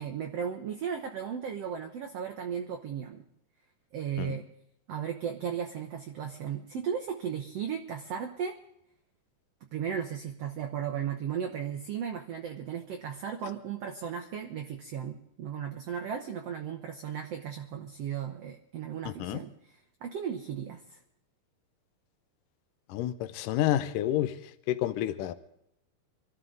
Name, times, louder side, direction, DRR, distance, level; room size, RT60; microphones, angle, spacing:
voice 1, 0.0-3.2 3.9-4.4 4.9-8.6 9.7-19.7 20.0-21.0, right 8 dB, 65° right, 4 dB, 1.7 m, -35 dB
voice 2, 19.1-19.4 22.9-24.3 24.7-25.3, left 13 dB, 75° left, 11 dB, 2.3 m, -29 dB
25.5 x 13.0 x 3.9 m, 0.76 s
omnidirectional pair, 4.0 m